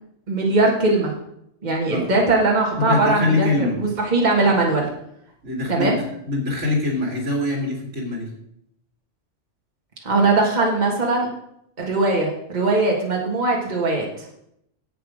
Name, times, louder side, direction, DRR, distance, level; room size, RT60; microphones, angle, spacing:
voice 1, 0.3-1.1 1.6-4.9 5.7-6.0 10.0-11.3 11.8-14.3, right 2 dB, 35° right, -1 dB, 1.8 m, -20 dB
voice 2, 2.8-3.8 5.4-8.3, left 2 dB, 70° right, 0 dB, 2.8 m, -24 dB
10.5 x 8.3 x 5.0 m, 0.76 s
omnidirectional pair, 1.3 m